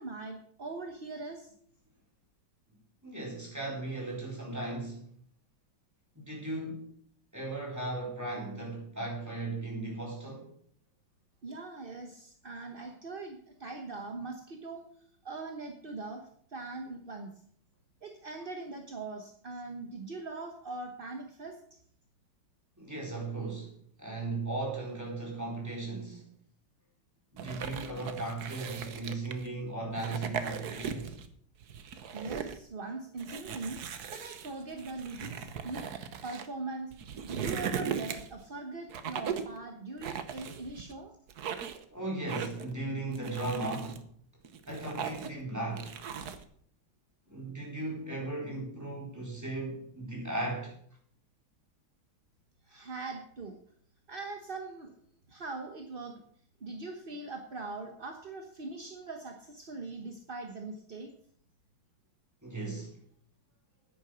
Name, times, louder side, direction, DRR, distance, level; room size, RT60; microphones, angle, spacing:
voice 1, 0.0-1.5 11.4-14.8 15.2-16.2 16.5-17.3 18.0-21.6 32.1-35.9 36.2-36.9 37.2-41.1 52.7-53.6 54.1-54.9 55.3-56.2 56.6-61.1, right 3 dB, 35° right, 0.9 m, -41 dB
voice 2, 3.0-5.1 6.2-6.9 7.3-10.5 22.8-23.7 24.0-26.3 27.3-31.2 41.9-44.1 44.7-46.0 47.3-50.8 62.4-63.0, right 2 dB, 10° right, 4.0 m, -37 dB
sound 1, 27.4-29.5 29.9-31.3 31.6-32.6 33.2-36.5 36.9-38.4 38.9-39.6 40.0-40.9 41.3-41.8 42.3-42.7 43.1-44.0 44.4-45.4 45.8-46.4, right 7 dB, 55° right, 1.3 m, -38 dB
10.0 x 9.7 x 6.2 m
omnidirectional pair, 2.2 m